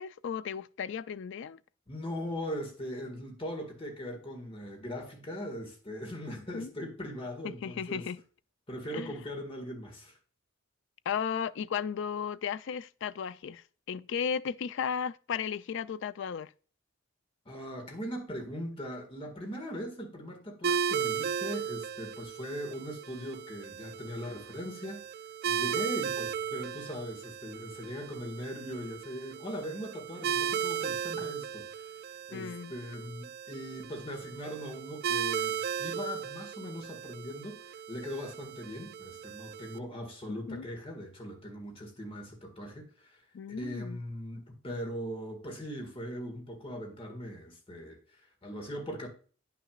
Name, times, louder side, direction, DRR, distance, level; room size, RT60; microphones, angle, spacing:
voice 1, 0.0-1.6 6.5-6.7 7.4-8.2 8.9-9.2 11.1-16.5 32.3-32.7 40.3-40.7 43.3-44.0, left 7 dB, 60° left, 0.4 m, -35 dB
voice 2, 1.9-8.1 8.7-10.2 17.5-25.1 25.5-43.2 43.5-49.1, equal, 30° left, 1.7 m, -40 dB
sound 1, 20.6-39.8, right 8 dB, 50° right, 0.3 m, -36 dB
9.6 x 6.0 x 2.4 m
head